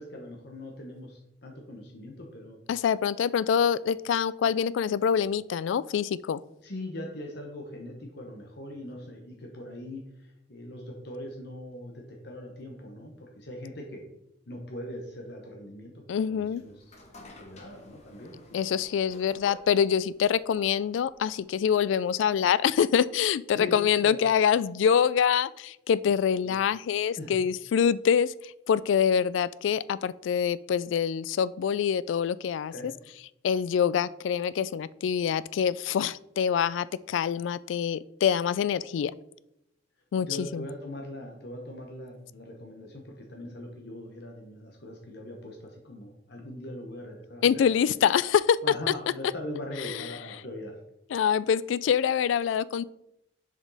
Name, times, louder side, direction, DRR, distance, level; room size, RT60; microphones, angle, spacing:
voice 1, 0.0-2.6 6.6-14.1 14.5-16.9 17.3-18.8 23.5-24.2 26.4-26.5 27.2-27.3 32.7-32.9 40.2-47.6 48.6-50.7, left 1 dB, 60° left, 1 dB, 1.0 m, -41 dB
voice 2, 2.7-6.4 16.1-16.6 18.5-32.7 33.4-39.1 40.1-40.6 47.4-48.6 49.8-49.9 51.1-52.8, left 8 dB, 85° left, 19 dB, 0.3 m, -25 dB
sound 1, 16.4-21.7, left 2 dB, 35° left, 1.3 m, -52 dB
7.1 x 5.1 x 4.0 m, 0.84 s
head